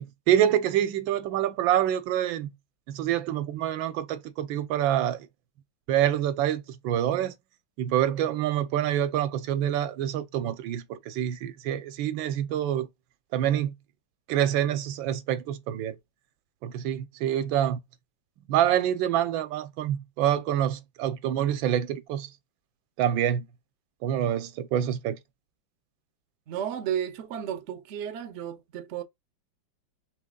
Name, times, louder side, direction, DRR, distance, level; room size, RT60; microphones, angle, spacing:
voice 1, 0.0-2.5 2.9-5.3 5.9-7.3 7.8-12.9 13.3-13.7 14.3-16.0 16.6-17.8 18.5-22.3 23.0-23.4 24.0-25.2, right 11 dB, 90° right, 1.4 m, -26 dB
voice 2, 26.5-29.0, right 9 dB, 70° right, 0.6 m, -33 dB
4.0 x 2.9 x 3.6 m
omnidirectional pair, 2.1 m